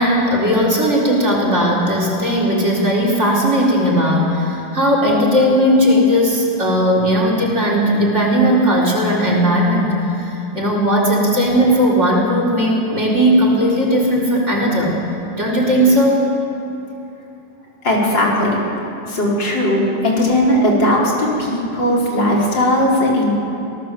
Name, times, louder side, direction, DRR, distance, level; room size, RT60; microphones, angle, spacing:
voice 1, 0.0-15.0 15.4-16.3, equal, 40° right, -2 dB, 4.6 m, -16 dB
voice 2, 17.8-18.6 19.1-23.3, left 1 dB, 80° left, -4 dB, 5.2 m, -17 dB
26.5 x 18.0 x 7.7 m, 2.9 s
omnidirectional pair, 2.0 m